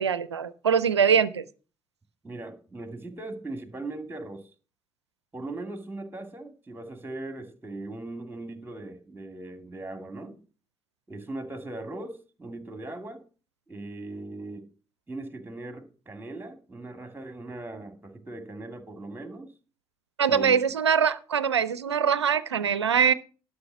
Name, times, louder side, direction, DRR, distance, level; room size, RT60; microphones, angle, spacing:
voice 1, 0.0-1.4 20.2-23.1, right 7 dB, 90° right, 17 dB, 0.4 m, -23 dB
voice 2, 2.2-4.5 5.3-10.4 11.1-13.2 13.7-14.7 15.1-19.5 20.3-20.5, right 2 dB, 15° right, 6 dB, 2.4 m, -39 dB
11.5 x 6.3 x 5.9 m, 0.37 s
figure-of-eight pair, 45°, 14 cm